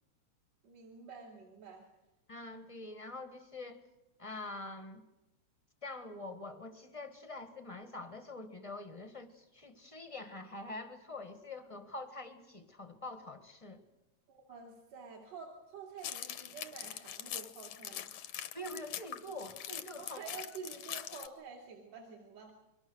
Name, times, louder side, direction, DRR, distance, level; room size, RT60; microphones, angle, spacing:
voice 1, 0.6-1.9 14.3-18.1 20.0-22.5, right 5 dB, 60° right, -2 dB, 3.8 m, -49 dB
voice 2, 2.3-3.8 4.2-5.0 5.8-13.8 18.5-20.2, left 2 dB, 20° left, 8 dB, 0.9 m, -45 dB
sound 1, 16.0-21.3, left 11 dB, 75° left, 2.3 m, -43 dB
28.5 x 23.0 x 6.3 m, 0.99 s
omnidirectional pair, 3.3 m